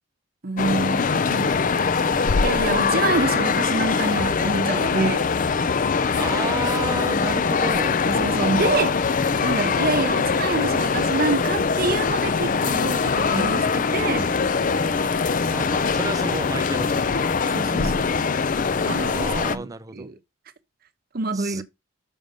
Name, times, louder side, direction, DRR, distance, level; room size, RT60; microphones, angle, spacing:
voice 1, 0.4-1.9 2.4-5.3 8.1-9.0 9.4-14.4 17.5-18.1 18.8-19.3 19.5-19.7 19.9-20.2 21.1-21.6, right 3 dB, 45° right, 0.8 m, -26 dB
sound 1, 0.6-19.6, left 5 dB, 40° left, 0.4 m, -22 dB
voice 2, 5.9-8.0 15.5-17.2 19.0-20.1 21.3-21.6, right 3 dB, 15° right, 0.5 m, -32 dB
6.4 x 5.3 x 5.1 m
head